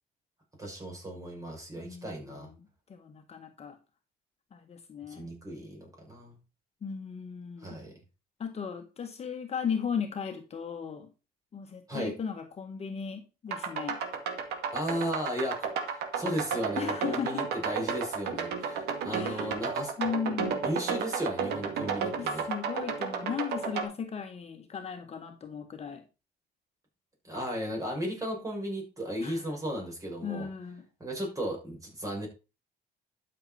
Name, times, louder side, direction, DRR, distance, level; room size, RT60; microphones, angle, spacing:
voice 1, 0.6-2.5 5.1-6.4 7.6-8.0 11.9-12.2 14.7-19.9 20.6-22.5 27.2-30.5 31.0-32.3, equal, 20° right, 0 dB, 6.2 m, -35 dB
voice 2, 1.8-3.8 4.5-5.3 6.8-7.8 8.4-11.1 11.5-14.0 16.8-17.4 19.1-19.6 20.0-20.7 22.2-26.0 29.2-29.4 30.2-30.9, left 7 dB, 40° left, 5 dB, 1.6 m, -36 dB
sound 1, 13.5-23.8, right 6 dB, 75° right, 2.2 m, -32 dB
12.0 x 6.8 x 4.3 m, 0.31 s
cardioid pair, 110°, 17 cm